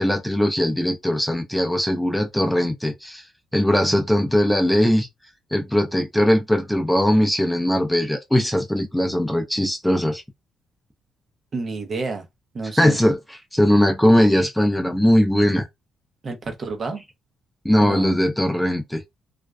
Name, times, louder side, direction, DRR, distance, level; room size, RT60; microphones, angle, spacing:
voice 1, 0.0-3.2 3.5-5.1 5.5-10.2 12.8-15.7 17.6-19.0, equal, 5° left, 0.5 m, -20 dB
voice 2, 11.5-12.3 12.5-13.0 16.2-17.0 17.8-18.2, right 3 dB, 45° right, 0.8 m, -29 dB
2.5 x 2.2 x 2.2 m
cardioid pair, 90°, 0 cm